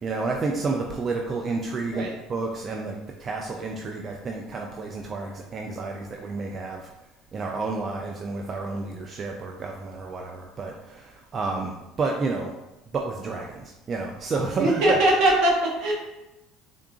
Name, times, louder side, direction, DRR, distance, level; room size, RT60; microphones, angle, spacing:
voice 1, 0.0-6.9 7.3-12.5 12.9-15.0, right 3 dB, 30° right, 1 dB, 0.3 m, -30 dB
voice 2, 14.6-15.9, right 1 dB, 65° right, -2 dB, 1.1 m, -21 dB
3.7 x 3.7 x 2.4 m, 0.98 s
cardioid pair, 140°, 0 cm